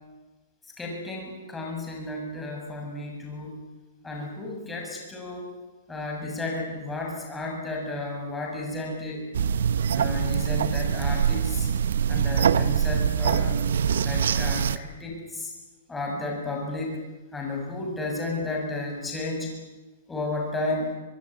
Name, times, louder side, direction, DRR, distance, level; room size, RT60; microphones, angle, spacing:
voice 1, 0.8-3.7 4.0-5.5 5.9-9.3 9.9-11.7 12.1-13.6 14.0-15.5 15.9-19.5 20.1-21.0, left 2 dB, 10° left, -1 dB, 7.1 m, -33 dB
sound 1, 9.3-14.8, right 8 dB, 80° right, 1.2 m, -24 dB
25.5 x 21.0 x 9.9 m, 1.2 s
hypercardioid pair, 160°, 0 cm